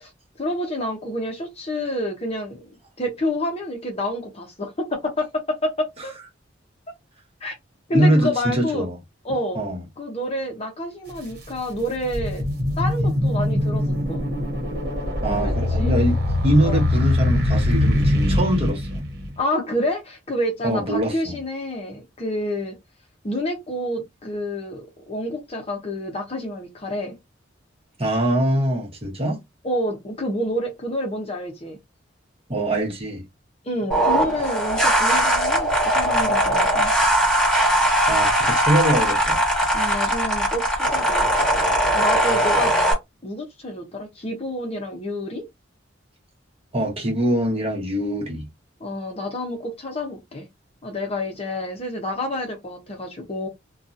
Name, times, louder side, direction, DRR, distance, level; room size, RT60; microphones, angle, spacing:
voice 1, 0.4-2.6 3.0-6.1 7.4-7.5 7.9-8.9 9.2-9.6 10.0-12.4 12.8-13.8 14.1-14.2 15.3-15.9 16.6-16.9 19.4-22.8 23.2-27.2 29.6-31.8 33.6-36.9 39.7-41.3 41.9-42.7 43.2-45.4 48.8-50.5 50.8-53.5, left 1 dB, 30° left, 0.7 m, -28 dB
voice 2, 7.9-9.0 9.5-9.8 15.2-16.2 16.4-19.0 20.6-21.4 28.0-29.4 32.5-33.3 38.1-39.4 46.7-48.5, right 1 dB, 30° right, 1.0 m, -23 dB
sound 1, 11.1-11.2 11.7-19.4, left 1 dB, 55° right, 1.1 m, -22 dB
sound 2, 33.9-42.9, right 1 dB, 5° left, 1.3 m, -20 dB
2.8 x 2.3 x 2.5 m
head